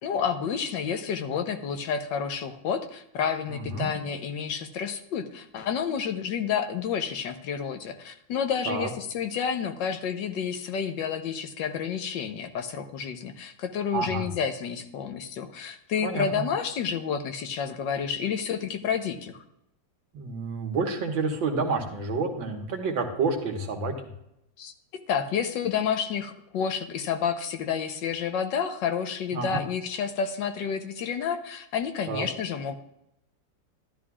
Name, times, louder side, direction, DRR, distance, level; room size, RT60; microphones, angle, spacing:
voice 1, 0.0-19.4 24.6-32.8, left 7 dB, 75° left, 7 dB, 1.5 m, -30 dB
voice 2, 3.5-3.9 8.7-8.9 13.9-14.3 16.0-16.5 20.1-23.9 29.3-29.7 32.1-32.3, right 4 dB, 85° right, 3 dB, 2.2 m, -29 dB
12.5 x 12.5 x 2.4 m, 0.81 s
omnidirectional pair, 2.0 m